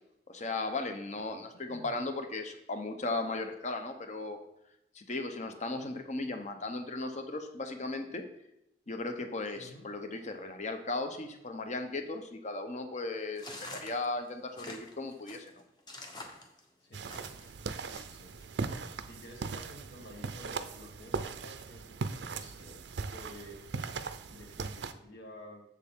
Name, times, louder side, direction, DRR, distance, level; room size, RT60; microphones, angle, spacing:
voice 1, 0.3-4.4 4.9-8.2 8.9-15.5, left 2 dB, 40° left, 6 dB, 0.8 m, -36 dB
voice 2, 1.1-2.0 9.5-9.9 16.8-17.1 17.8-18.4 19.0-23.9 24.3-25.6, left 1 dB, 70° left, 0 dB, 1.7 m, -52 dB
sound 1, 13.4-17.5 17.9-18.5, left 2 dB, 25° left, 1.0 m, -47 dB
sound 2, 16.9-24.9, right 4 dB, 75° right, 0.5 m, -39 dB
7.2 x 6.7 x 3.7 m, 0.84 s
head